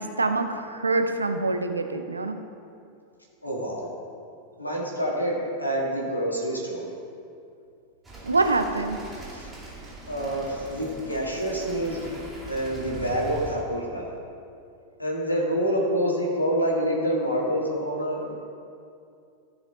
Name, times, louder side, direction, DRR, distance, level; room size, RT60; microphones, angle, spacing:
voice 1, 0.0-2.4 8.2-9.0, right 3 dB, 80° right, 7 dB, 0.6 m, -25 dB
voice 2, 3.4-3.9 4.6-6.9 9.3-9.5 10.1-12.1 12.5-14.1 15.0-18.3, equal, 85° left, -2 dB, 1.9 m, -27 dB
sound 1, 8.0-13.5, right 2 dB, 10° right, 2.5 m, -41 dB
14.5 x 5.0 x 4.2 m, 2.5 s
figure-of-eight pair, 90°, 0 cm